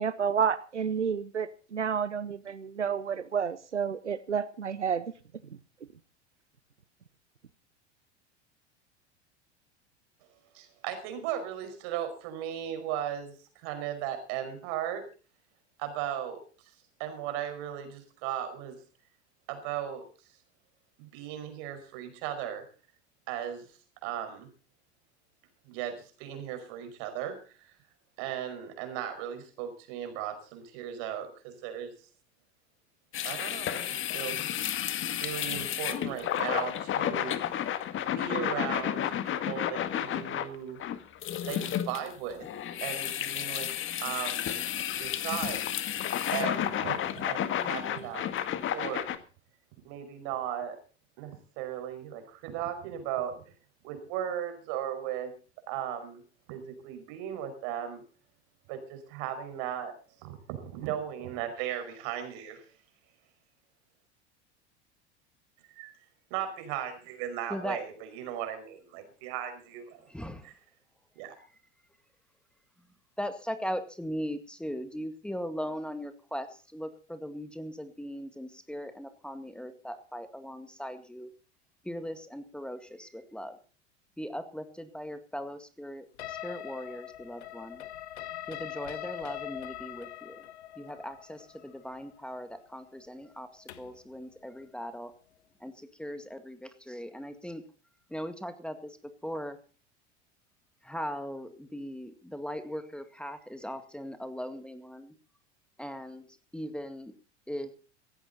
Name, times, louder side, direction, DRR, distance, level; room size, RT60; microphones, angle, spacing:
voice 1, 0.0-5.0, right 7 dB, 90° right, 15 dB, 0.8 m, -30 dB
voice 2, 10.5-15.1 15.8-16.7 17.0-18.8 19.5-20.1 21.0-22.6 23.3-24.5 25.7-27.7 28.2-31.9 33.2-34.4 34.7-34.8 35.2-37.4 38.1-40.8 41.5-42.5 42.8-43.7 44.0-44.6 45.0-48.3 48.7-49.1 49.8-50.8 51.2-53.5 53.8-55.3 55.7-56.2 56.5-58.0 58.7-60.0 60.2-62.6 65.7-65.9 66.3-70.1 70.4-70.5 71.2-71.4, right 10 dB, 55° right, 8 dB, 5.3 m, -37 dB
sound 1, 33.1-49.2, left 11 dB, 35° left, 1.8 m, -32 dB
voice 3, 70.1-70.5 73.2-81.3 81.8-83.6 84.2-87.8 88.5-90.5 90.8-95.1 95.6-97.6 98.1-99.0 99.2-99.6 100.8-105.1 105.8-106.3 106.5-107.1 107.5-107.7, equal, 5° left, 8 dB, 2.1 m, -39 dB
sound 2, 86.2-94.0, left 12 dB, 70° left, 1.4 m, -42 dB
17.5 x 15.0 x 4.2 m, 0.37 s
figure-of-eight pair, 80°, 34 cm